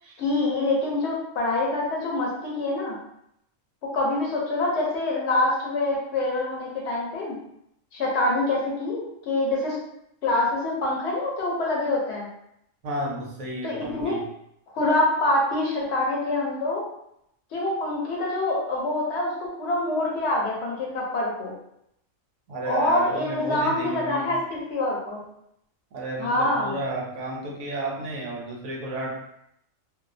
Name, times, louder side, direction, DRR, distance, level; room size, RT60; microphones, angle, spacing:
voice 1, 0.2-3.0 3.9-7.4 7.9-9.8 10.2-12.3 13.6-14.2 14.7-16.8 17.5-21.5 22.6-25.2 26.2-26.8, left 2 dB, 65° left, -3 dB, 0.9 m, -25 dB
voice 2, 12.8-14.3 22.5-24.4 25.9-29.4, right 2 dB, 75° right, -2 dB, 0.9 m, -32 dB
2.6 x 2.0 x 2.5 m, 0.77 s
omnidirectional pair, 1.3 m